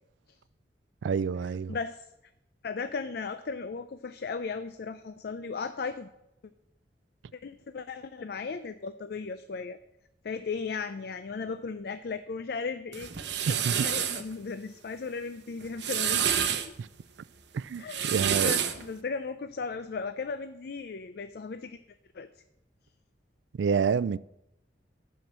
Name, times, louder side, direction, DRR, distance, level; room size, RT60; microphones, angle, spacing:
voice 1, 1.0-1.8 13.5-13.9 16.8-16.9 17.5-18.5 23.6-24.2, right 6 dB, 85° right, 0.3 m, -28 dB
voice 2, 1.7-2.0 2.6-6.1 7.4-9.8 10.2-13.1 13.5-16.7 17.8-21.8 22.1-22.3, left 4 dB, 60° left, 0.4 m, -36 dB
sound 1, 12.9-14.2 15.6-16.7 17.7-18.8, right 9 dB, 70° right, 0.8 m, -28 dB
10.5 x 5.7 x 7.4 m
head